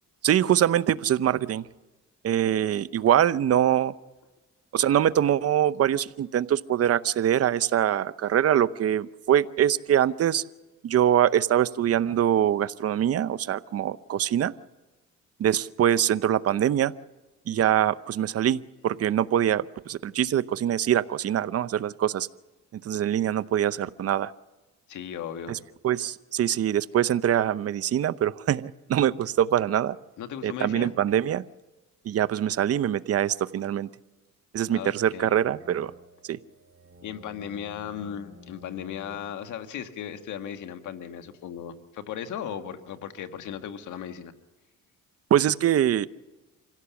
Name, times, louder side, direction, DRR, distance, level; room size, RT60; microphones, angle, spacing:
voice 1, 0.2-1.6 2.2-3.9 4.7-10.4 10.8-14.5 15.4-16.9 17.5-22.3 22.7-24.3 25.5-25.6 25.8-29.9 30.4-31.4 32.0-33.9 34.5-35.9 36.2-36.4 45.3-46.1, right 10 dB, 50° right, 15 dB, 0.7 m, -24 dB
voice 2, 24.9-25.6 30.2-31.0 34.7-35.4 37.0-44.3, left 9 dB, 80° left, 8 dB, 1.7 m, -36 dB
sound 1, 34.6-39.2, left 1 dB, 35° right, 2.1 m, -52 dB
25.5 x 16.5 x 7.1 m, 1.2 s
cardioid pair, 90°, 30 cm